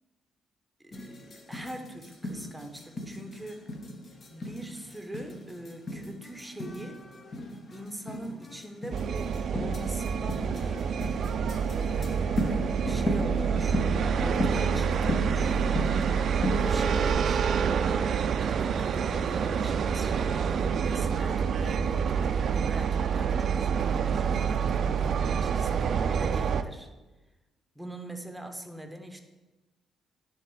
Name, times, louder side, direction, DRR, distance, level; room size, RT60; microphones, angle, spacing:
voice 1, 0.8-1.2 1.5-3.6 4.3-7.0 7.7-10.9 11.7-15.9 16.5-26.9 27.7-29.2, right 1 dB, 5° right, 5 dB, 0.9 m, -42 dB
sound 1, 0.9-17.1, left 1 dB, 45° left, 0.9 m, -36 dB
sound 2, 8.9-26.6, right 7 dB, 60° right, 0.3 m, -27 dB
10.0 x 3.6 x 4.7 m, 1.1 s
cardioid pair, 90°, 0 cm